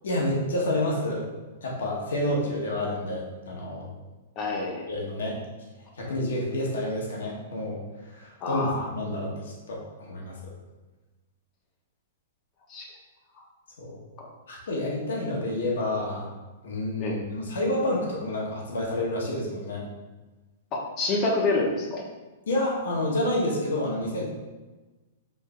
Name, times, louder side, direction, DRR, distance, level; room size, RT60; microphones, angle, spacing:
voice 1, 0.0-1.2 1.6-3.9 4.9-5.4 6.0-7.8 8.1-10.5 13.8-14.0 14.5-16.3 16.6-19.8 22.5-24.2, left 1 dB, 85° left, -2 dB, 0.9 m, -29 dB
voice 2, 4.4-4.9 8.4-8.9 12.7-12.9 14.2-14.3 17.0-17.2 20.7-22.0, left 3 dB, 30° left, -1 dB, 0.6 m, -27 dB
4.3 x 2.7 x 2.3 m, 1.2 s
hypercardioid pair, 145°, 0 cm